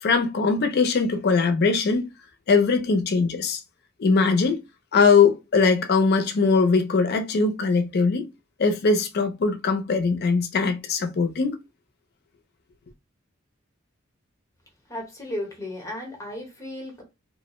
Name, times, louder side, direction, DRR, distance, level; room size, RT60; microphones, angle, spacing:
voice 1, 0.0-2.1 2.5-3.6 4.0-4.6 4.9-8.2 8.6-11.6, left 4 dB, 55° left, 0.5 m, -21 dB
voice 2, 14.9-17.0, left 1 dB, 15° left, 0.9 m, -34 dB
2.4 x 2.1 x 2.9 m
head